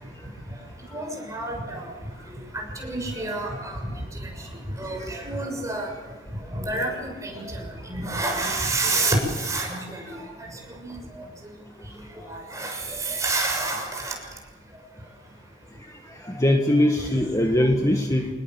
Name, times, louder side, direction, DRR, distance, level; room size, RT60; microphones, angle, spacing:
voice 1, 0.9-1.9 2.2-5.9 6.4-10.5 10.8-11.2 12.3-14.1 17.5-17.6, right 2 dB, 15° right, 1 dB, 6.7 m, -29 dB
voice 2, 16.2-18.3, left 1 dB, 15° left, 3 dB, 1.6 m, -21 dB
25.5 x 20.0 x 7.6 m, 1.4 s
head